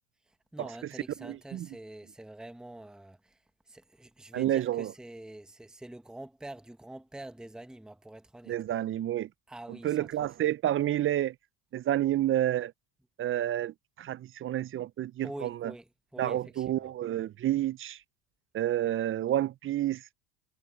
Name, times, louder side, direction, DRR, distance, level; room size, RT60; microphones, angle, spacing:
voice 1, 0.3-3.4 3.7-8.5 9.5-10.3 15.2-16.9, right 1 dB, ahead, 1.2 m, -46 dB
voice 2, 1.2-1.7 4.3-4.9 8.5-9.3 9.7-11.4 11.7-12.7 13.2-15.7 16.2-18.0 18.5-20.1, right 12 dB, 30° right, 0.4 m, -30 dB
supercardioid pair, 95°, 47 cm